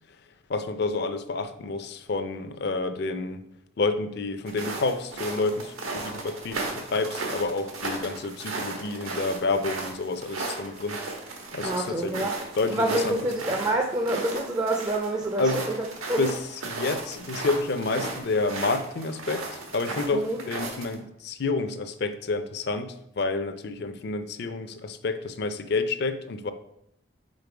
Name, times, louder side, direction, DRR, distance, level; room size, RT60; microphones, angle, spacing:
voice 1, 0.5-3.4 3.8-11.0 11.5-13.2 13.5-13.6 15.4-15.6 16.2-19.4 19.7-26.5, left 3 dB, 50° left, 10 dB, 0.4 m, -29 dB
sound 1, 4.5-20.9, right 3 dB, 90° right, 1.2 m, -35 dB
voice 2, 11.6-12.3 12.7-15.5 16.1-16.3 20.1-20.4, right 1 dB, 20° right, 2 dB, 0.4 m, -27 dB
5.2 x 4.0 x 4.7 m, 0.77 s
head